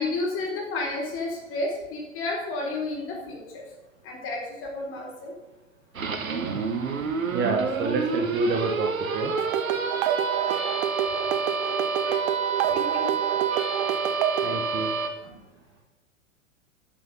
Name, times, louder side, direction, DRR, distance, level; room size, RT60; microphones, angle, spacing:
voice 1, 0.0-3.6 4.0-5.3 12.7-13.1 15.2-15.3, left 2 dB, 30° left, -1 dB, 4.1 m, -31 dB
sound 1, 5.9-15.1, right 5 dB, 80° right, 1.3 m, -28 dB
voice 2, 7.3-9.3 14.4-14.9, right 4 dB, 25° right, 4 dB, 1.2 m, -28 dB
sound 2, 9.4-14.5, right 11 dB, 45° right, 0.8 m, -28 dB
10.5 x 6.8 x 5.6 m, 1.2 s
figure-of-eight pair, 105°, 40 cm